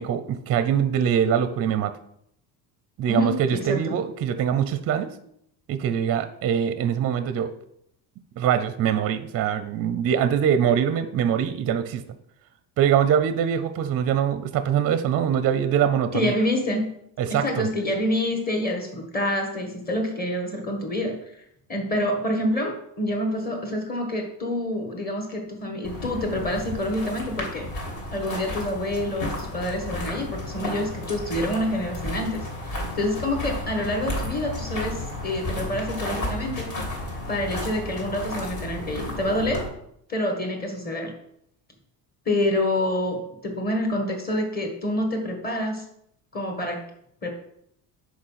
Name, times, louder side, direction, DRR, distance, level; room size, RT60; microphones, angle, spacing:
voice 1, 0.0-1.9 3.0-5.1 5.7-7.5 8.4-12.0 12.8-16.4 17.2-17.7, right 8 dB, 35° right, 12 dB, 0.5 m, -23 dB
voice 2, 3.1-4.0 16.1-16.9 17.3-21.2 21.7-27.7 28.1-32.4 33.0-36.7 37.3-39.6 40.1-41.1 42.2-45.8 46.3-46.9 47.2-47.3, left 1 dB, 20° left, 3 dB, 1.5 m, -27 dB
sound 1, 25.8-39.7, left 1 dB, 45° left, 2.6 m, -33 dB
6.5 x 4.8 x 5.6 m, 0.72 s
cardioid pair, 155°, 41 cm